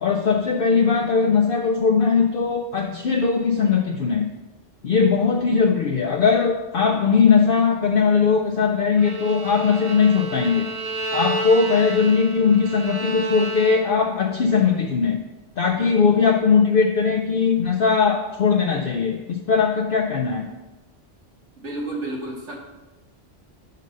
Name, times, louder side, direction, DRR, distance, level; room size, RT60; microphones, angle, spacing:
voice 1, 0.0-4.3 4.8-10.7 11.1-15.2 15.6-20.5, left 5 dB, 60° left, 4 dB, 0.6 m, -19 dB
Bowed string instrument, 9.0-14.1, right 2 dB, 60° right, 1.1 m, -30 dB
voice 2, 21.6-22.6, right 2 dB, 80° right, -2 dB, 1.8 m, -30 dB
5.4 x 5.3 x 6.3 m, 1.1 s
omnidirectional pair, 1.2 m